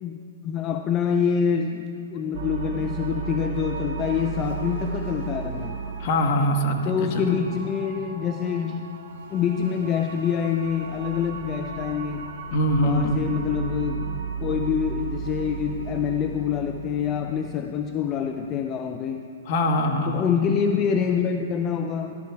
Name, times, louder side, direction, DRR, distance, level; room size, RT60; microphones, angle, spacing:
voice 1, 0.0-5.8 6.9-8.8 9.3-12.3 12.8-19.2 20.1-22.2, left 7 dB, 30° left, 5 dB, 0.5 m, -26 dB
sound 1, 2.3-17.6, right 7 dB, 45° right, 2.7 m, -35 dB
voice 2, 6.0-7.4 12.5-13.2 19.5-20.3, equal, 50° left, 5 dB, 1.3 m, -23 dB
12.5 x 12.0 x 4.7 m, 2.7 s
hypercardioid pair, 125°, 0 cm